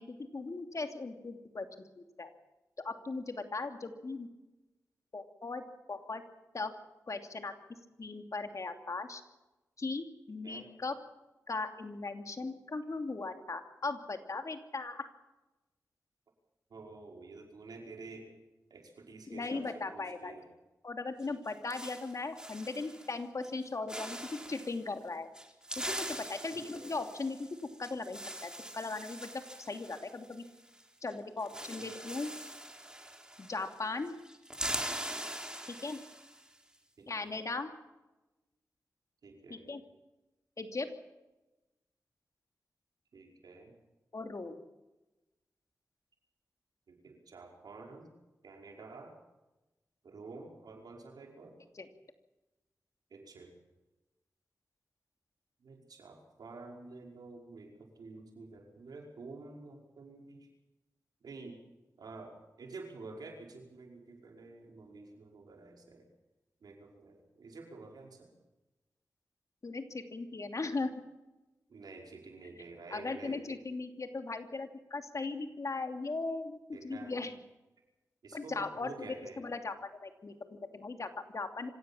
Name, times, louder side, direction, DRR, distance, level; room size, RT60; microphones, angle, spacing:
voice 1, 0.0-1.7 2.0-2.3 2.8-4.3 5.1-5.6 5.9-6.2 6.5-6.7 7.1-7.5 8.0-9.2 9.8-11.0 11.5-15.1 19.3-20.3 20.8-25.3 25.8-30.4 31.0-32.3 33.4-34.1 35.7-36.0 37.1-37.7 39.5-39.8 40.6-40.9 44.1-44.6 51.7-51.9 69.6-70.9 72.9-77.4 78.3-79.1 79.4-81.7, left 3 dB, 55° left, 6 dB, 2.8 m, -38 dB
voice 2, 16.7-18.3 18.7-20.5 26.5-26.9 31.5-31.9 37.0-37.3 39.2-39.7 43.1-43.7 46.9-48.1 48.4-49.2 50.0-51.5 53.1-53.5 55.6-60.5 61.2-61.6 62.0-66.1 66.6-68.3 71.7-73.4 76.7-77.2 78.2-79.4, right 3 dB, 85° right, 1 dB, 5.3 m, -49 dB
sound 1, 21.2-23.2 23.4-23.6 23.9-24.8 25.3-30.8 31.1-31.2 31.4-33.8 34.1-36.5, right 1 dB, 10° right, 4.0 m, -42 dB
25.5 x 17.0 x 7.3 m, 1.1 s
cardioid pair, 50°, 7 cm